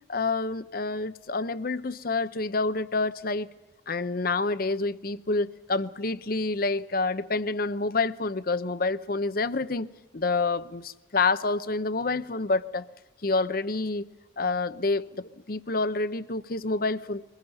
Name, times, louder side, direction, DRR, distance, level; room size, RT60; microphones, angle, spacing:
voice 1, 0.1-3.5 3.9-12.9 13.2-14.1 14.4-17.2, left 3 dB, 45° left, 0.8 m, -28 dB
23.0 x 20.5 x 7.0 m
head